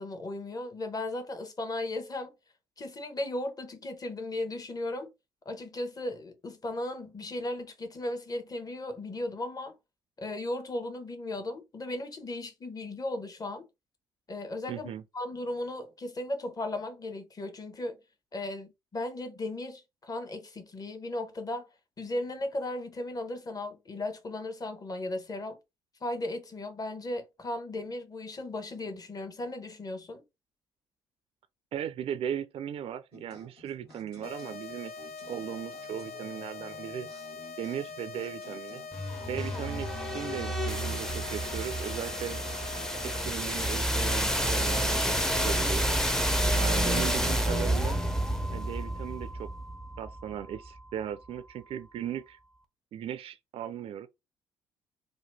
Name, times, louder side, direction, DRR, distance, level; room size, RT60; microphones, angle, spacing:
voice 1, 0.0-2.3 2.8-5.1 5.4-9.7 10.2-13.7 14.3-18.0 18.3-21.7 22.0-25.6 26.0-30.2, left 1 dB, 30° left, 1.0 m, -36 dB
voice 2, 14.7-15.0 31.7-34.9 35.3-37.1 37.6-38.8 39.3-42.4 43.0-45.9 46.5-48.0 48.5-49.5 50.0-52.4 52.9-54.1, right 9 dB, 50° right, 0.4 m, -37 dB
sound 1, 33.1-43.6, left 2 dB, 90° left, 1.4 m, -54 dB
sound 2, 34.2-43.2, left 4 dB, 55° left, 0.5 m, -43 dB
sound 3, 38.9-50.8, right 1 dB, 5° left, 0.6 m, -29 dB
2.9 x 2.2 x 3.2 m
hypercardioid pair, 50°, 12 cm